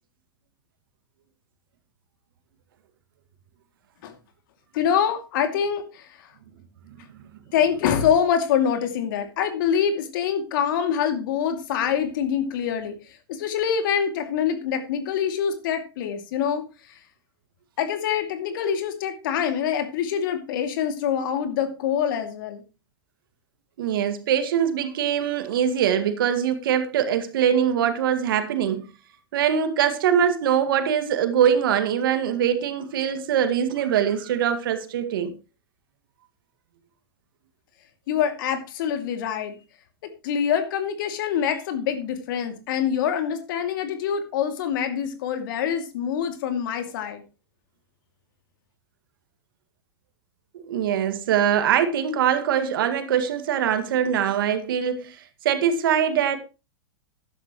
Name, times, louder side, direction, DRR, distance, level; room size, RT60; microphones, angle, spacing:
voice 1, 4.7-6.3 7.5-13.0 13.3-17.0 17.8-22.6 38.1-39.6 40.0-47.2, left 8 dB, 60° left, 2.6 m, -25 dB
voice 2, 23.8-28.9 29.3-35.3 50.5-55.2 55.4-56.4, right 9 dB, 65° right, 2.1 m, -23 dB
14.0 x 11.5 x 3.1 m
hypercardioid pair, 105°, 12 cm